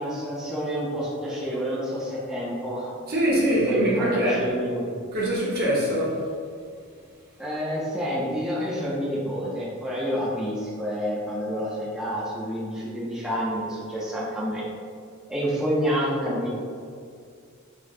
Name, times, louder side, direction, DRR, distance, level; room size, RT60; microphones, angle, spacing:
voice 1, 0.0-3.0 3.5-4.8 7.4-14.6 15.3-16.5, equal, 5° right, -9 dB, 0.6 m, -28 dB
voice 2, 3.1-4.4 5.1-6.2, right 1 dB, 50° right, -6 dB, 1.0 m, -23 dB
5.2 x 2.2 x 3.7 m, 2.2 s
head